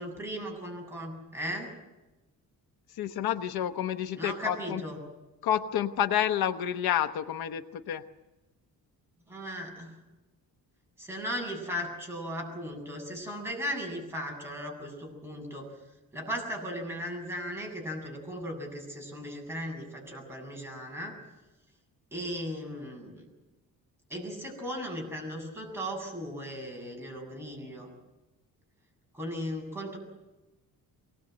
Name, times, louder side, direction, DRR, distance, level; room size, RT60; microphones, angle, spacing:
voice 1, 0.0-1.7 4.2-5.0 9.3-10.0 11.0-15.7 16.1-21.1 22.1-23.3 24.1-27.9 29.1-30.0, equal, 5° right, -1 dB, 7.7 m, -37 dB
voice 2, 3.0-4.8 5.4-8.0, left 10 dB, 80° left, 9 dB, 1.1 m, -29 dB
23.5 x 21.0 x 7.9 m, 1.0 s
cardioid pair, 165°, 37 cm